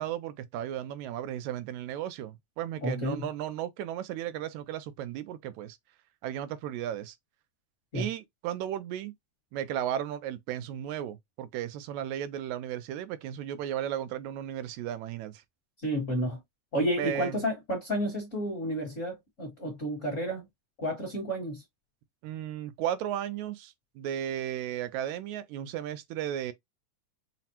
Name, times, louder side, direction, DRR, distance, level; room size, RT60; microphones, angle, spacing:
voice 1, 0.0-5.8 6.2-7.2 7.9-9.1 9.5-15.4 17.0-17.4 22.2-26.5, right 11 dB, 80° right, 1.9 m, -35 dB
voice 2, 2.8-3.2 7.9-8.1 15.8-16.4 16.7-20.5 20.8-21.6, equal, 40° left, 1.1 m, -31 dB
5.7 x 2.1 x 2.8 m
omnidirectional pair, 3.4 m